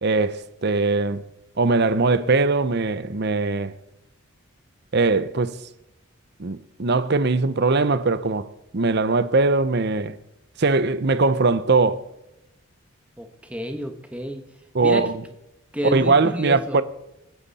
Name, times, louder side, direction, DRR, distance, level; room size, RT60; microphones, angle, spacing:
voice 1, 0.0-1.2 1.6-3.7 4.9-5.6 6.4-10.2 10.6-12.0 14.7-15.1 15.8-16.8, right 3 dB, 50° right, 0.7 m, -21 dB
voice 2, 13.2-14.5 14.8-15.1 15.7-16.8, equal, 5° right, 1.4 m, -30 dB
27.0 x 9.4 x 4.2 m
head